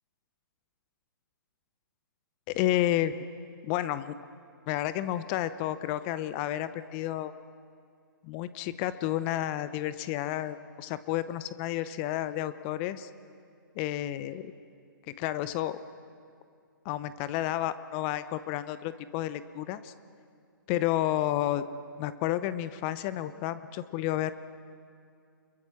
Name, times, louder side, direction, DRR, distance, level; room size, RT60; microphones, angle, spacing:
voice 1, 2.5-3.1 3.6-4.2 4.7-7.3 8.2-13.1 13.8-14.5 15.1-15.8 16.8-19.9 20.7-21.6 22.0-24.3, left 13 dB, 30° left, 14 dB, 0.7 m, -31 dB
28.0 x 22.0 x 6.1 m, 2.3 s
figure-of-eight pair, 130°, 12 cm